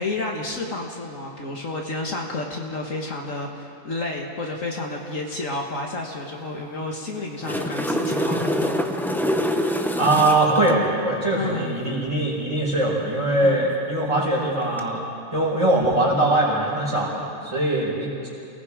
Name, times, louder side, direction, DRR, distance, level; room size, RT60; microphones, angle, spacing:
voice 1, 0.0-8.9 11.3-11.8 13.4-13.7, left 2 dB, 55° left, 0 dB, 1.9 m, -30 dB
sound 1, 7.2-10.8 14.6-14.8, equal, ahead, 0.6 m, -25 dB
voice 2, 10.0-15.0 15.3-18.3, right 1 dB, 20° right, -5 dB, 5.0 m, -22 dB
28.0 x 18.5 x 5.0 m, 2.7 s
omnidirectional pair, 1.6 m